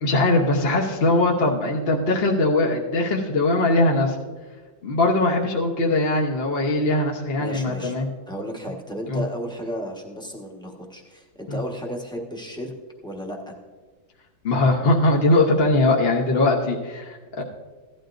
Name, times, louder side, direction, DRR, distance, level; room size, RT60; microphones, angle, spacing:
voice 1, 0.0-4.2 4.8-8.1 9.1-9.2 11.5-11.6 14.4-17.4, left 2 dB, 40° left, -1 dB, 1.0 m, -21 dB
voice 2, 7.4-7.9 8.3-12.7 13.0-13.5 17.3-17.4, equal, 5° left, 0 dB, 1.0 m, -33 dB
16.0 x 12.0 x 2.6 m, 1.4 s
omnidirectional pair, 2.0 m